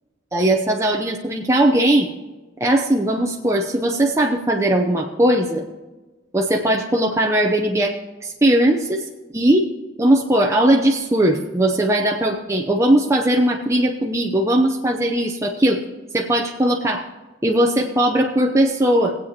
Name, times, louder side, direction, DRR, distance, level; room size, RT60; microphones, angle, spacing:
voice 1, 0.3-2.1 2.6-5.6 6.3-7.9 8.2-9.1 9.3-9.6 10.0-15.8 16.1-17.1 17.4-19.2, right 1 dB, 15° right, 1 dB, 0.6 m, -19 dB
19.0 x 8.4 x 2.9 m, 1.2 s
head